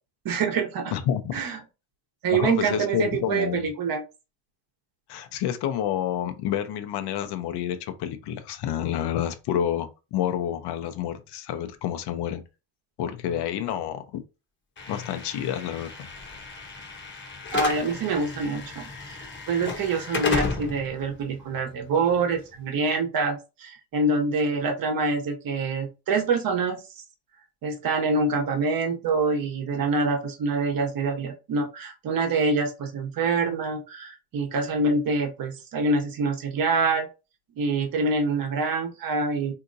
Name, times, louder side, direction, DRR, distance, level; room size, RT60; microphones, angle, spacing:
voice 1, 0.2-0.9 1.3-1.6 2.2-4.0 17.5-18.8 19.1-26.8 27.6-37.1 37.6-39.5, right 3 dB, 50° right, 1.1 m, -26 dB
voice 2, 0.9-1.4 2.3-3.6 5.1-12.4 13.0-14.2 14.9-16.1, left 10 dB, 65° left, 0.7 m, -29 dB
Slam / Alarm, 14.8-22.8, left 4 dB, 25° left, 0.9 m, -34 dB
3.6 x 2.8 x 2.6 m
cardioid pair, 100°, 43 cm